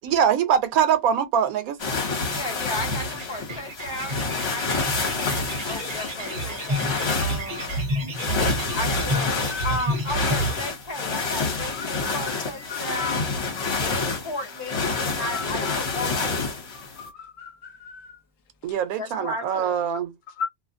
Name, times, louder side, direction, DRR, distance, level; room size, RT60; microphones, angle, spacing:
voice 1, 0.0-1.8 18.6-20.1, right 8 dB, 90° right, 1.1 m, -23 dB
sound 1, 1.8-17.1, left 4 dB, 50° left, 1.3 m, -28 dB
sound 2, 2.0-10.7, right 1 dB, 45° right, 1.3 m, -30 dB
voice 2, 2.3-5.3 5.6-7.9 8.3-9.3 9.6-13.3 13.7-16.4 19.0-19.8, left 1 dB, 20° left, 1.4 m, -35 dB
voice 3, 9.4-9.9 11.7-12.4 12.7-13.1 13.6-13.8 15.3-15.7 16.7-18.2 19.1-19.2 20.3-20.5, left 5 dB, 70° left, 1.1 m, -36 dB
Telephone, 11.7-11.8 12.2-12.7 13.1-13.2 13.6-13.7 14.0-14.2 14.7-14.8 15.1-15.2 15.5-16.1 17.1-17.2 18.7-18.8, left 2 dB, ahead, 1.1 m, -47 dB
2.7 x 2.4 x 2.5 m
omnidirectional pair, 1.5 m